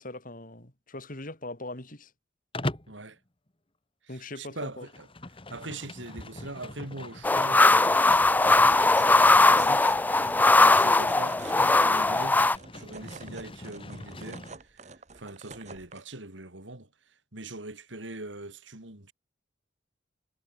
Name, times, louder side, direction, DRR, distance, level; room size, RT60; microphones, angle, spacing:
voice 1, 0.0-2.1 4.1-4.9, left 2 dB, 45° left, 4.3 m, -40 dB
Livestock farm animals working animals, 2.5-3.0 4.7-14.5, left 1 dB, 30° left, 2.3 m, -41 dB
voice 2, 2.9-3.2 4.0-5.1 5.5-10.2 10.5-19.1, right 2 dB, 80° right, 4.1 m, -42 dB
sound 1, 7.2-12.6, left 2 dB, 10° left, 0.3 m, -20 dB
sound 2, 8.0-16.0, right 3 dB, 40° right, 2.3 m, -48 dB
head